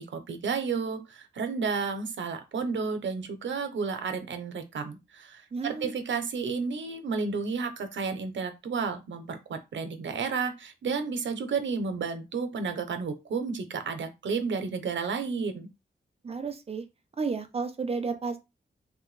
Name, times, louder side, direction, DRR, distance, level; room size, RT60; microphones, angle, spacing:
voice 1, 0.0-15.7, right 5 dB, 80° right, 7 dB, 0.6 m, -32 dB
voice 2, 5.5-6.0 16.2-16.8 17.2-18.4, right 4 dB, 30° right, 7 dB, 0.4 m, -32 dB
3.3 x 2.1 x 3.2 m, 0.24 s
wide cardioid pair, 165°, 19 cm